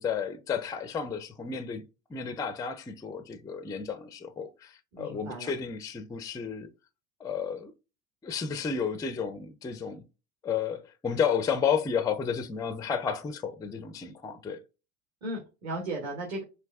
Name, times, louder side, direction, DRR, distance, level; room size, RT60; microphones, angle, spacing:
voice 1, 0.0-1.8 2.1-6.7 7.2-7.7 8.2-10.0 10.4-14.6, left 6 dB, 10° left, 0.4 m, -32 dB
voice 2, 4.9-5.5 15.2-16.4, right 1 dB, 45° right, 1.8 m, -35 dB
5.1 x 2.6 x 2.2 m
hypercardioid pair, 75°, 40 cm